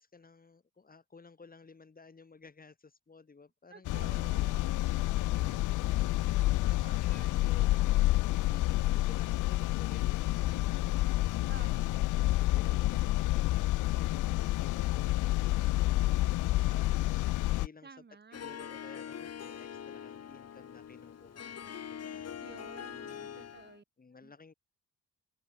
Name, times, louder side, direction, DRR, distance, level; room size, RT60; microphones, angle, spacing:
voice 1, 0.0-4.4 6.4-10.9 12.4-18.0 18.3-22.3 22.9-23.5 24.0-24.5, left 4 dB, 30° left, 4.6 m, -56 dB
voice 2, 3.7-6.4 6.8-7.8 8.5-9.1 11.5-12.2 17.8-18.5 22.4-23.8 24.2-24.3, right 5 dB, 35° right, 7.9 m, -54 dB
sound 1, 3.8-17.7, left 17 dB, 80° left, 0.7 m, -29 dB
Harp, 18.3-23.8, left 8 dB, 55° left, 5.7 m, -44 dB
cardioid pair, 90°, 30 cm